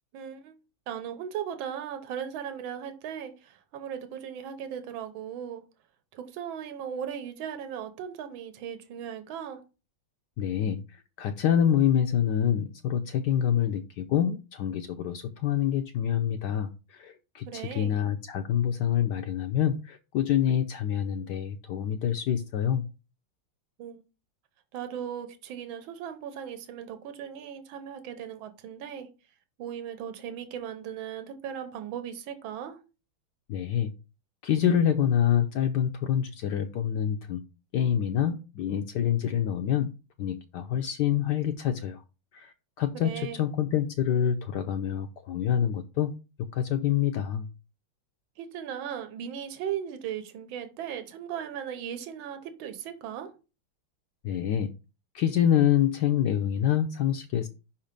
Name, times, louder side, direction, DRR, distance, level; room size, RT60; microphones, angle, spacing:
voice 1, 0.1-0.5 0.9-5.6 6.1-9.6 17.4-17.9 23.8-24.0 24.7-29.1 29.6-32.8 42.9-43.4 48.4-53.3, right 9 dB, 75° right, 1.7 m, -37 dB
voice 2, 10.4-22.9 33.5-33.9 34.4-37.4 37.7-39.9 40.2-42.0 42.3-46.1 46.5-47.5 54.2-54.7 55.1-57.5, left 9 dB, 70° left, 1.0 m, -26 dB
5.6 x 4.3 x 5.1 m
omnidirectional pair, 2.3 m